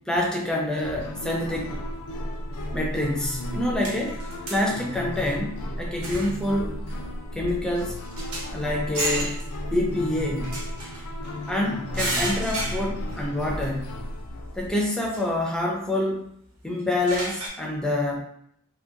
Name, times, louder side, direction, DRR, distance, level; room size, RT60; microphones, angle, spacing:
voice 1, 0.1-1.7 2.7-4.2 4.5-6.8 7.3-8.0 8.5-9.3 9.7-10.5 11.5-13.9 14.5-16.2 16.6-18.2, left 1 dB, 5° left, -1 dB, 0.4 m, -27 dB
sound 1, 0.8-14.7, left 1 dB, 85° left, 0.4 m, -34 dB
sound 2, 3.8-4.7 5.2-5.3 6.0-6.5 6.9-7.0 7.5-7.6 7.8-8.6 8.9-9.5 10.4-11.3 11.9-13.2 13.6-13.7 15.1-15.2 16.8-17.5, right 1 dB, 80° right, 0.8 m, -32 dB
2.7 x 2.2 x 2.4 m, 0.71 s
head